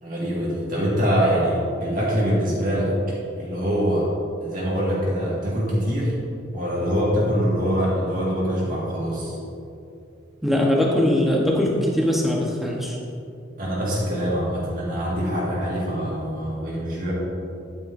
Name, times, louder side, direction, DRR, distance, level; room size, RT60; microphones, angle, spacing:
voice 1, 0.0-4.1 4.4-6.1 6.5-9.4 13.6-17.1, equal, 45° right, -7 dB, 1.8 m, -24 dB
voice 2, 10.4-13.0, left 1 dB, ahead, -3 dB, 1.0 m, -21 dB
9.7 x 9.2 x 2.6 m, 2.6 s
head